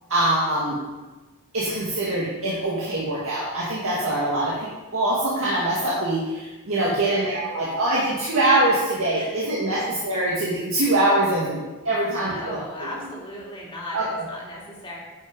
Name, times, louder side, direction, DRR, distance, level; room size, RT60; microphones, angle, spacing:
voice 1, 0.1-0.8 1.5-12.6 13.9-14.3, right 1 dB, 65° right, -7 dB, 2.1 m, -23 dB
voice 2, 6.8-7.3 9.1-9.3 9.7-9.8 12.0-15.0, left 1 dB, 25° left, -5 dB, 2.9 m, -37 dB
10.5 x 6.1 x 5.4 m, 1.2 s
head